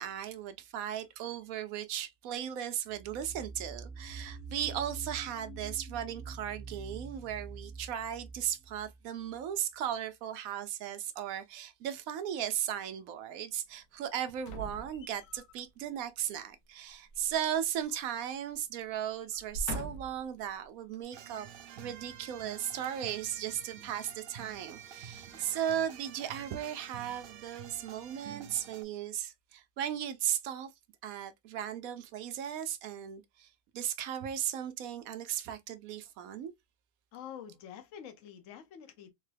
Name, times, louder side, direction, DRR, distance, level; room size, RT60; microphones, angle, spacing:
voice 1, 0.0-21.5 21.8-30.7 31.0-33.5 33.7-36.5, right 10 dB, 75° right, 1.0 m, -36 dB
sound 1, 2.9-9.5, right 4 dB, 45° left, 1.1 m, -46 dB
sound 2, 14.4-15.5 17.1-18.2 18.5-18.7 19.3-20.3 20.9-21.0, equal, 85° left, 1.3 m, -42 dB
sound 3, 21.1-28.8, right 8 dB, 90° right, 0.5 m, -49 dB
voice 2, 25.1-25.5 37.1-39.1, left 9 dB, 65° left, 1.0 m, -47 dB
3.7 x 2.1 x 3.2 m
omnidirectional pair, 1.6 m